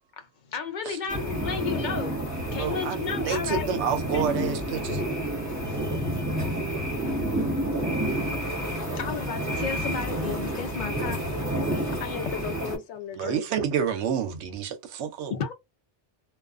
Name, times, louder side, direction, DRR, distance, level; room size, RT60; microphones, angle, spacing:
voice 1, 0.2-2.2 2.5-3.8 4.1-4.3 5.4-5.8 7.1-7.7 9.0-11.5 15.3-15.5, left 6 dB, 55° left, 0.6 m, -34 dB
sound 1, 1.1-12.8, right 1 dB, 15° right, 1.1 m, -29 dB
voice 2, 2.6-5.0 13.2-15.3, right 7 dB, 75° right, 0.9 m, -29 dB
voice 3, 11.7-13.5, left 9 dB, 90° left, 0.9 m, -36 dB
2.4 x 2.3 x 2.3 m
omnidirectional pair, 1.2 m